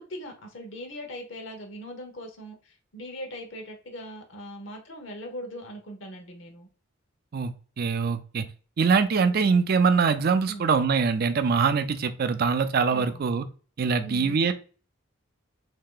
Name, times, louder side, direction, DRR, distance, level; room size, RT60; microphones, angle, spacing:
voice 1, 0.0-6.7 10.5-10.7 12.9-13.3 14.0-14.4, equal, 65° left, 0.9 m, -40 dB
voice 2, 7.3-8.5 8.8-13.4 13.8-14.5, right 5 dB, 50° right, 0.4 m, -23 dB
3.2 x 2.8 x 3.7 m
head